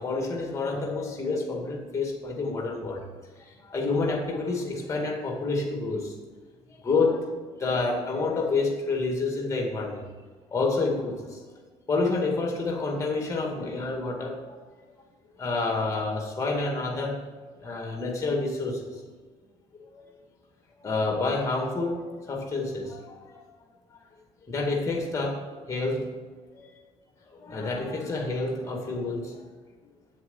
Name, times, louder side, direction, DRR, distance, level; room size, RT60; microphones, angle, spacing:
voice 1, 0.0-3.0 3.7-6.1 6.8-7.3 7.6-10.0 10.5-11.4 11.9-14.6 15.4-17.2 17.6-19.0 19.9-20.1 20.8-23.4 24.5-25.4 25.7-26.1 26.5-26.8 27.3-29.4, left 3 dB, 25° left, 1 dB, 2.1 m, -28 dB
8.0 x 7.6 x 5.5 m, 1.4 s
supercardioid pair, 85°, 13 cm